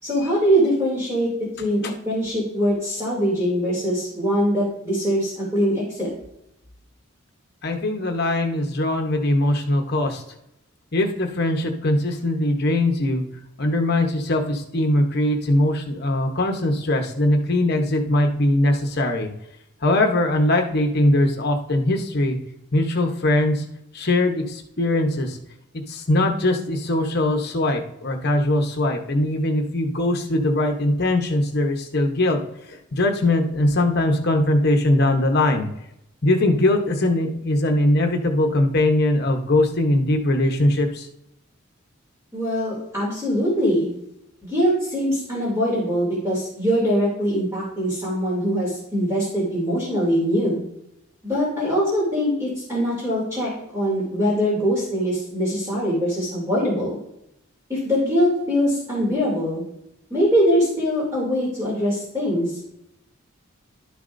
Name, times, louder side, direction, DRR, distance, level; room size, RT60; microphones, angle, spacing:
voice 1, 0.0-1.3 1.6-6.1 42.3-43.9 44.4-50.6 51.2-57.0 57.7-59.6 60.1-62.6, equal, 15° right, -7 dB, 2.8 m, -22 dB
voice 2, 7.6-10.2 10.9-13.2 13.6-19.3 19.8-22.4 22.7-23.6 23.9-25.4 25.9-32.4 32.9-35.7 36.2-41.0, left 1 dB, 50° left, 4 dB, 1.0 m, -21 dB
11.5 x 6.9 x 2.6 m, 0.83 s
head